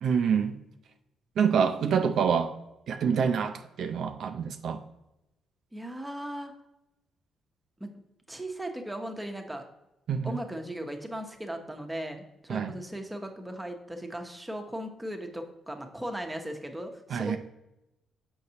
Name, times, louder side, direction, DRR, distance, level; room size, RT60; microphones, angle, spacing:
voice 1, 0.0-0.6 1.4-2.5 2.9-4.8 10.1-10.3 12.5-12.7 17.1-17.4, right 7 dB, 65° right, 7 dB, 0.4 m, -26 dB
voice 2, 5.7-6.5 7.8-7.9 8.3-9.6 10.2-17.4, right 1 dB, 10° right, 4 dB, 0.9 m, -37 dB
6.5 x 5.2 x 2.8 m, 0.91 s
cardioid pair, 90°, 0 cm